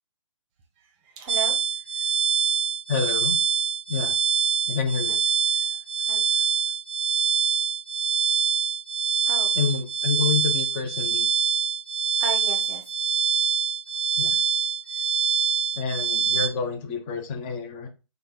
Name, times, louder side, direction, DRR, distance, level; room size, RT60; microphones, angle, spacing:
voice 1, 1.0-1.6 1.9-2.0 5.1-5.2 5.5-5.8 6.1-6.5 9.3-9.5 12.2-12.9, right 6 dB, 20° right, 3 dB, 0.7 m, -35 dB
sound 1, 1.3-16.5, right 7 dB, 65° right, 0.5 m, -25 dB
voice 2, 2.9-3.4 3.9-4.2 4.7-5.2 9.6-11.3 14.2-14.4 15.8-17.9, left 6 dB, 15° left, 5 dB, 0.4 m, -28 dB
3.1 x 2.3 x 3.7 m, 0.30 s
figure-of-eight pair, 145°, 17 cm